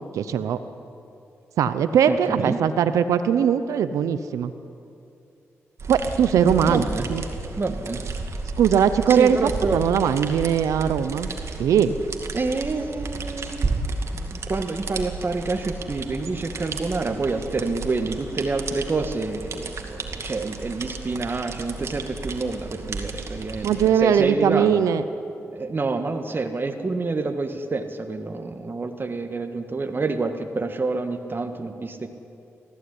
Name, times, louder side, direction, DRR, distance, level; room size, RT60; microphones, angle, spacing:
voice 1, 0.1-0.6 1.6-4.5 5.9-7.2 8.6-11.3 11.6-12.0 23.6-25.0, right 8 dB, 90° right, 11 dB, 0.7 m, -20 dB
voice 2, 2.1-2.6 6.7-7.1 7.6-8.0 9.1-9.8 12.3-13.7 14.1-24.8 25.5-32.1, right 3 dB, 40° right, 7 dB, 1.6 m, -28 dB
sound 1, 5.8-23.9, right 3 dB, 60° right, 2.3 m, -33 dB
19.0 x 15.0 x 9.7 m, 2.7 s
cardioid pair, 50°, 5 cm